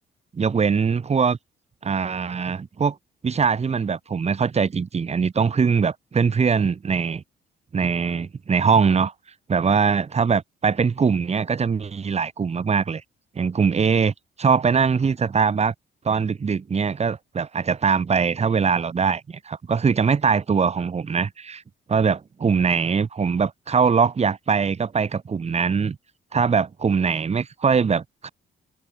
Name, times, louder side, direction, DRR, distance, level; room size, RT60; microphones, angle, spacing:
voice 1, 0.4-1.4 1.8-2.9 3.2-7.2 7.7-9.1 9.5-13.0 13.3-14.1 14.4-15.7 16.0-21.6 21.9-26.0 26.3-28.3, right 5 dB, 30° right, 1.3 m, -22 dB
open air
cardioid pair, 90°, 20 cm